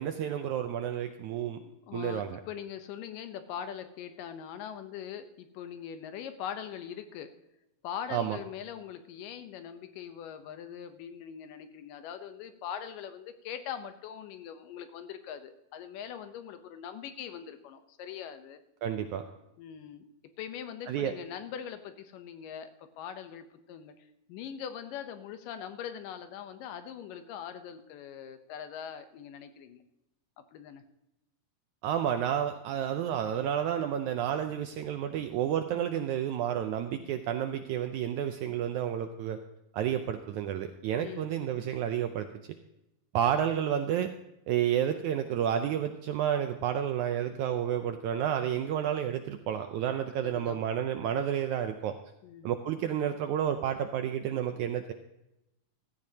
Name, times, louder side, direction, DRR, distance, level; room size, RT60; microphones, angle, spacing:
voice 1, 0.0-1.6 1.9-2.4 8.1-8.4 18.8-19.2 20.9-21.1 31.8-39.4 39.7-42.3 43.1-44.1 44.5-52.0 52.4-54.9, right 9 dB, 80° right, 7 dB, 1.7 m, -30 dB
voice 2, 1.6-7.3 7.8-18.6 19.6-20.0 20.4-22.7 23.0-23.9 24.3-29.8 30.4-30.8 35.7-35.9 37.0-37.2 38.5-38.6 41.0-41.3 43.4-43.5 50.2-50.6 52.2-52.5, left 8 dB, 75° left, 9 dB, 2.4 m, -42 dB
15.5 x 14.0 x 2.8 m, 0.89 s
omnidirectional pair, 4.0 m